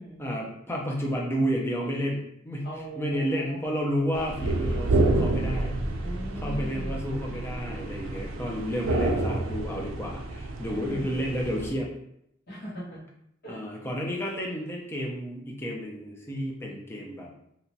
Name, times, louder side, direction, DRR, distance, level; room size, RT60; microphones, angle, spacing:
voice 1, 0.2-2.7 3.0-5.8 6.4-11.9 13.5-17.3, equal, 10° left, -1 dB, 0.4 m, -31 dB
voice 2, 2.6-3.5 6.0-7.0 10.7-11.3 12.5-13.0 13.4-13.6, equal, 50° left, -9 dB, 1.4 m, -40 dB
sound 1, 4.1-11.7, right 2 dB, 90° right, 0.4 m, -29 dB
2.9 x 2.2 x 2.7 m, 0.76 s
head